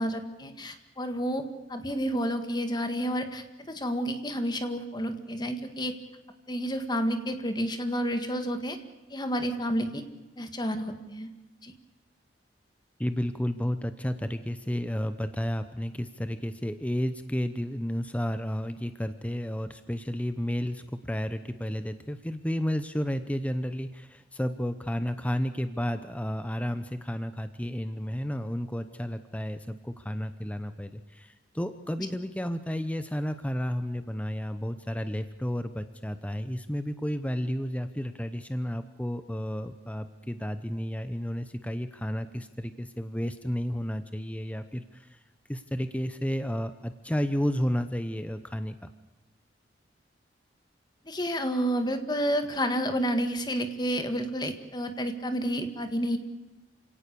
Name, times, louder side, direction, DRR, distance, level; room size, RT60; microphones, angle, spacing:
voice 1, 0.0-1.4 1.7-5.9 6.5-8.8 9.1-10.0 10.4-11.3 11.6-11.7 51.1-56.2, equal, 25° left, 7 dB, 1.9 m, -30 dB
voice 2, 13.0-45.2 45.5-48.9, equal, 10° left, 10 dB, 0.8 m, -32 dB
28.0 x 18.0 x 6.9 m, 1.1 s
head